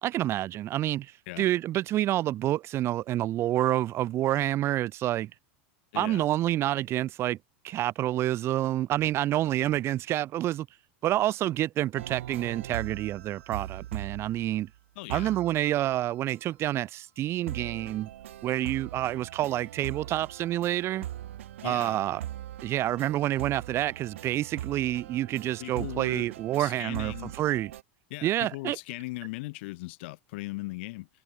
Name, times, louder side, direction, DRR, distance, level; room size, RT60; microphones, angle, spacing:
voice 1, 0.0-1.1 1.4-5.3 5.9-7.4 7.6-10.7 11.0-14.7 15.1-18.1 18.4-21.1 21.6-22.2 22.6-27.7 28.2-28.8, right 13 dB, 40° right, 2.4 m, -28 dB
voice 2, 5.9-6.3 15.0-15.4 21.6-22.0 25.6-26.3 26.6-27.3 28.1-31.1, left 22 dB, 65° left, 4.7 m, -38 dB
sound 1, 12.0-14.8 15.1-16.4 17.5-27.8, right 12 dB, 85° right, 1.7 m, -41 dB
supercardioid pair, 115°, 7 cm